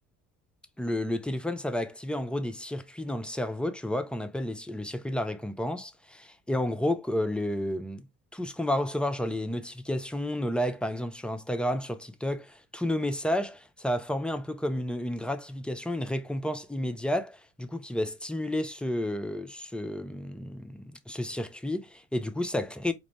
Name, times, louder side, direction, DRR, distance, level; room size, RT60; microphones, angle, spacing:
voice 1, 0.8-8.1 8.3-22.9, left 1 dB, 5° left, 0.6 m, -31 dB
4.8 x 2.0 x 3.3 m
hypercardioid pair, 55°, 38 cm